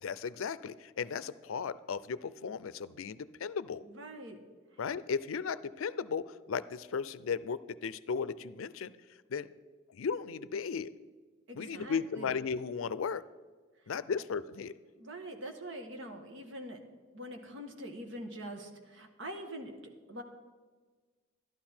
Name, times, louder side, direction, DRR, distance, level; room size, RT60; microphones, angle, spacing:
voice 1, 0.0-3.8 4.8-8.9 9.3-9.5 9.9-10.9 11.6-13.2 13.9-14.7, left 6 dB, 80° left, 16 dB, 0.5 m, -36 dB
voice 2, 3.8-4.4 11.5-12.3 15.0-16.8 17.1-19.7 20.1-20.2, right 1 dB, 65° right, 5 dB, 1.4 m, -44 dB
12.0 x 12.0 x 4.4 m, 1.4 s
head